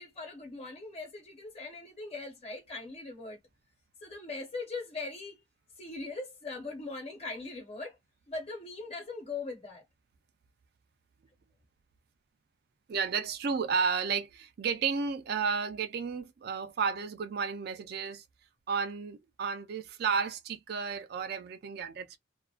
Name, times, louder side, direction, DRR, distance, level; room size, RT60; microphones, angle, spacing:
voice 1, 0.0-3.4 4.0-5.4 5.8-8.0 8.3-9.8, left 3 dB, 35° left, 1.0 m, -40 dB
voice 2, 12.9-18.2 18.7-22.2, right 5 dB, 55° right, 0.4 m, -32 dB
2.4 x 2.2 x 2.4 m
head